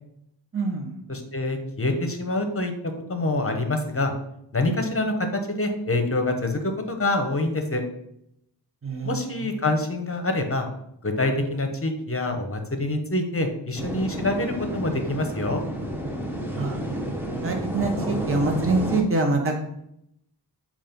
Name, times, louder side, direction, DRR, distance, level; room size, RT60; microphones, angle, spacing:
voice 1, 0.5-1.0 8.8-9.3 16.5-16.8 17.4-19.6, right 3 dB, 30° right, 1 dB, 1.0 m, -25 dB
voice 2, 1.1-2.7 3.1-4.1 4.5-7.8 9.0-10.7 11.0-15.6, left 2 dB, 30° left, 5 dB, 1.0 m, -26 dB
sound 1, 13.8-19.0, right 1 dB, 5° right, 1.0 m, -30 dB
7.3 x 2.5 x 5.2 m, 0.78 s
wide cardioid pair, 65°, 44 cm